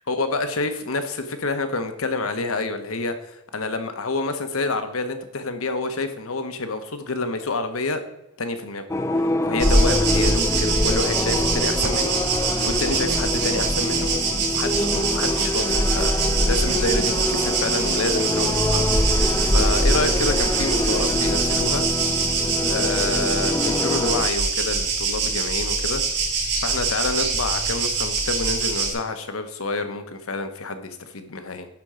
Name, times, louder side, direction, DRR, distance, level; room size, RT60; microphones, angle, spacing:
voice 1, 0.0-8.0 8.4-8.9 9.1-16.1 16.4-21.8 22.6-26.0 26.6-31.7, left 3 dB, 80° left, 8 dB, 1.0 m, -28 dB
sound 1, 8.9-24.3, left 1 dB, 15° left, 0.4 m, -26 dB
sound 2, 9.6-28.9, right 3 dB, 50° right, 3.5 m, -23 dB
12.0 x 4.5 x 5.0 m, 0.90 s
head